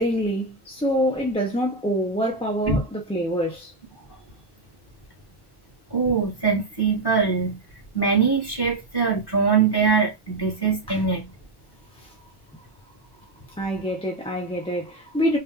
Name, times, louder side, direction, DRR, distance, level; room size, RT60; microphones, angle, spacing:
voice 1, 0.0-3.7 10.9-11.0 13.6-15.4, equal, 5° left, 0.5 m, -25 dB
voice 2, 5.9-7.6 7.9-11.3, right 5 dB, 20° left, 1.8 m, -22 dB
4.2 x 2.4 x 3.7 m
omnidirectional pair, 1.1 m